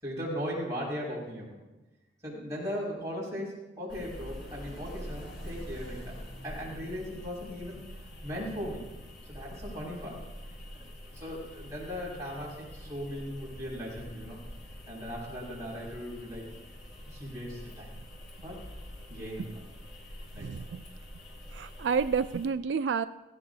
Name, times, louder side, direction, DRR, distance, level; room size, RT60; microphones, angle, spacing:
voice 1, 0.0-1.6 2.2-6.1 6.4-8.8 9.3-10.2 10.7-14.4 14.9-16.5 17.0-17.9 18.4-18.6 19.1-19.6 20.3-20.6, equal, 20° right, -6 dB, 5.8 m, -38 dB
sound 1, 3.9-22.5, equal, 75° left, 3.7 m, -45 dB
voice 2, 20.4-20.8 21.5-23.1, right 6 dB, 90° right, 12 dB, 0.4 m, -30 dB
17.0 x 16.0 x 2.7 m, 1.0 s
head